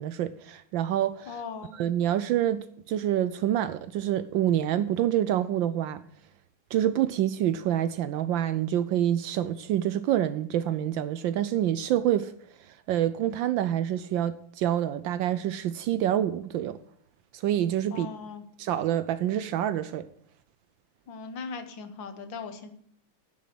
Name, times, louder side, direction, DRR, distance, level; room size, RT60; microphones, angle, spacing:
voice 1, 0.0-1.3 1.8-6.0 6.7-12.3 12.9-16.8 17.3-18.1 18.6-20.1, right 11 dB, 75° right, 1.2 m, -27 dB
voice 2, 1.3-1.8 17.9-18.4 21.1-22.7, left 5 dB, 65° left, 1.7 m, -39 dB
10.5 x 6.3 x 7.5 m
omnidirectional pair, 2.4 m